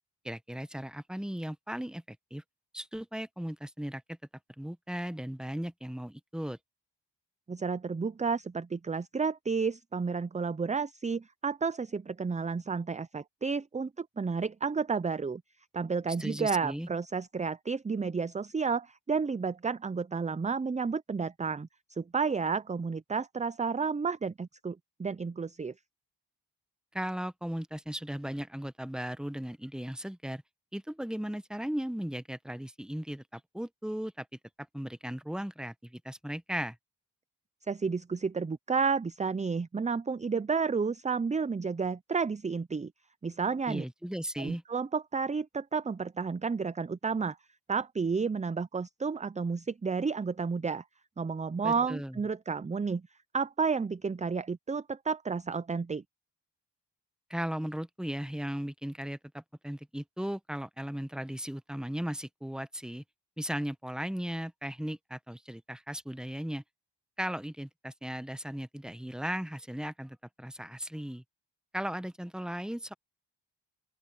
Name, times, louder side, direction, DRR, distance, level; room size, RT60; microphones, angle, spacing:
voice 1, 0.2-2.4 2.7-4.2 4.6-6.6 16.2-16.9 26.9-30.4 30.7-34.3 34.7-36.8 43.7-44.6 51.6-52.2 57.3-63.0 63.4-66.6 67.2-71.2 71.7-72.9, equal, ahead, 0.8 m, -37 dB
voice 2, 7.5-15.4 15.7-21.7 22.0-25.7 37.7-42.9 43.2-43.8 44.4-47.4 47.7-50.8 51.2-53.0 53.3-56.0, right 5 dB, 15° right, 0.4 m, -31 dB
open air
wide cardioid pair, 75°, 44 cm